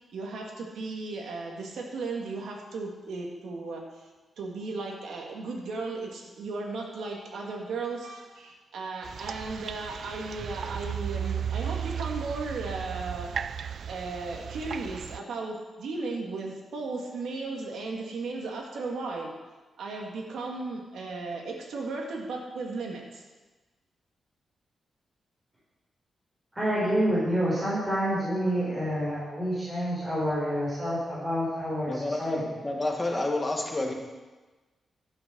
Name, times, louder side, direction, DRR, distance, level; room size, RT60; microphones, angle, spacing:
voice 1, 0.1-4.1 4.4-13.3 13.9-19.3 19.8-23.2, right 3 dB, 90° right, 0 dB, 2.5 m, -35 dB
sound 1, 9.0-15.2, right 8 dB, 60° right, 0.3 m, -35 dB
voice 2, 26.5-32.4, equal, 15° right, -9 dB, 4.7 m, -28 dB
voice 3, 31.9-33.9, left 2 dB, 20° left, 1 dB, 1.9 m, -29 dB
11.5 x 8.9 x 6.4 m, 1.2 s
wide cardioid pair, 135°, 0 cm